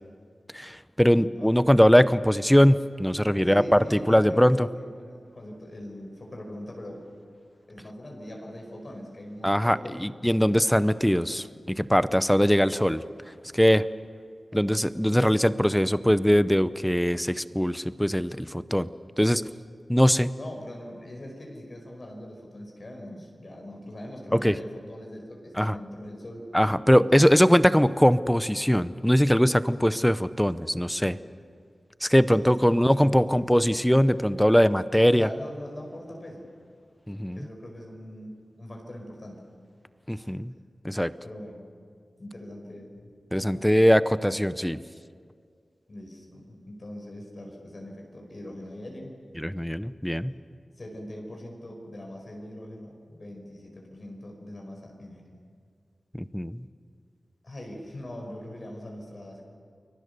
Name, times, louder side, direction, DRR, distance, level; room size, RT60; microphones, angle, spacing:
voice 1, 0.5-4.7 9.4-13.0 13.5-13.8 14.5-18.9 19.2-19.4 19.9-20.3 24.3-24.5 25.6-25.8 26.5-31.2 32.0-35.3 37.1-37.4 40.1-40.5 40.8-41.1 43.3-44.8 49.4-50.3 56.1-56.6, equal, 5° left, 14 dB, 0.7 m, -21 dB
voice 2, 1.1-1.5 3.4-7.0 7.7-10.3 14.5-14.6 20.4-26.5 26.9-27.4 32.3-33.6 35.0-36.5 37.3-39.4 40.1-40.3 41.2-41.7 42.2-43.8 45.9-49.2 50.8-55.3 57.4-59.4, left 1 dB, 45° left, 1 dB, 5.0 m, -41 dB
30.0 x 22.5 x 6.8 m, 2.1 s
wide cardioid pair, 105°, 0 cm